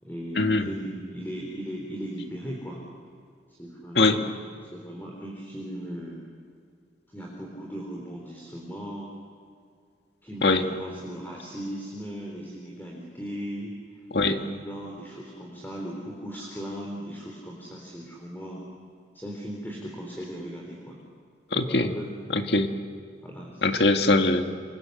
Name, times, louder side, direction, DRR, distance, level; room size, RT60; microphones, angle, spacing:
voice 1, 0.0-2.8 3.6-4.3 4.6-6.2 7.1-9.1 10.2-13.8 14.3-18.6 19.1-21.0 21.5-22.1 23.2-23.9, equal, 10° left, -2 dB, 3.8 m, -37 dB
voice 2, 21.5-21.9 22.3-22.7 23.6-24.5, left 2 dB, 65° left, 5 dB, 2.0 m, -21 dB
27.5 x 27.0 x 8.0 m, 2.3 s
head